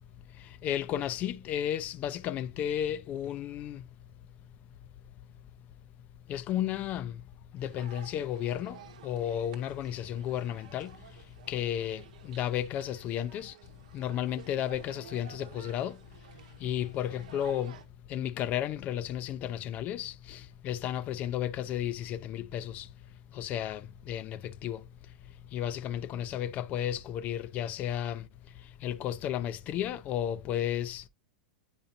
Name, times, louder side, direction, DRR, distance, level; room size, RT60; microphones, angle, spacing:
voice 1, 0.6-3.8 6.3-7.1 7.5-10.9 11.5-13.5 13.9-16.0 16.6-17.8 18.1-22.9 23.3-24.8 25.5-28.2 28.8-31.0, left 11 dB, 35° left, 0.4 m, -33 dB
sound 1, 7.6-17.8, right 9 dB, 65° right, 0.9 m, -52 dB
8.9 x 4.8 x 2.6 m
figure-of-eight pair, 95°, 4 cm